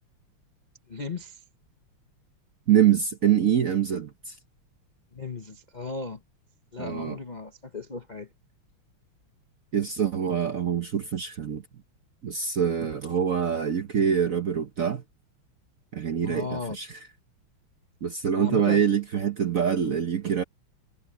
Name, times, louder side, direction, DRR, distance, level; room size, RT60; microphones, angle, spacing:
voice 1, 0.9-1.4 5.1-6.2 6.7-8.3 16.2-16.8 18.3-18.8, left 3 dB, 35° left, 0.6 m, -35 dB
voice 2, 2.7-4.3 6.8-7.2 9.7-11.6 12.2-15.0 15.9-16.9 18.0-20.4, right 8 dB, 55° right, 1.0 m, -25 dB
omnidirectional pair, 2.4 m